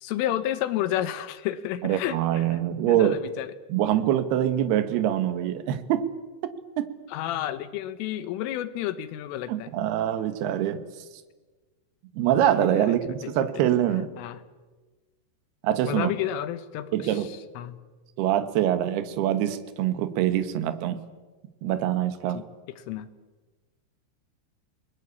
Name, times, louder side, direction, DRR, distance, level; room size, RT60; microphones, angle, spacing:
voice 1, 0.0-2.5 2.9-3.5 7.1-9.7 12.8-13.0 13.2-13.3 14.2-14.4 15.8-17.8 22.3-22.4 22.8-23.1, left 12 dB, 85° left, 12 dB, 3.8 m, -31 dB
voice 2, 1.8-3.2 3.7-6.1 6.4-6.9 9.5-10.8 12.1-14.1 15.6-16.1 16.9-17.3 18.2-21.1 21.6-22.4, right 11 dB, 65° right, 11 dB, 3.0 m, -24 dB
29.5 x 21.0 x 8.5 m, 1.3 s
omnidirectional pair, 5.6 m